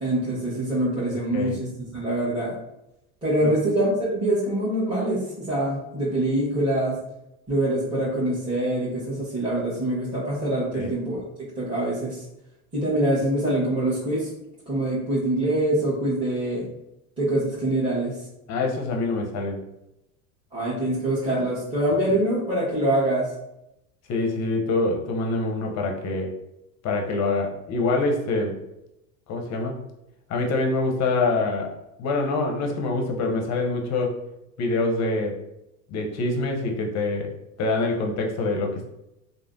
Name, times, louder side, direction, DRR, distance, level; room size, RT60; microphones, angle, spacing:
voice 1, 0.0-2.5 3.2-7.0 7.5-11.2 11.6-12.2 12.7-14.3 14.7-16.6 17.2-18.2 20.5-23.3, right 1 dB, 10° right, -10 dB, 1.2 m, -24 dB
voice 2, 18.5-19.6 24.1-26.3 26.8-28.5 29.3-29.8 30.3-31.7 32.0-34.2 34.6-35.4 35.9-37.3 37.6-38.9, left 3 dB, 40° left, 2 dB, 0.7 m, -25 dB
3.2 x 2.1 x 2.5 m, 0.88 s
hypercardioid pair, 85°, 44 cm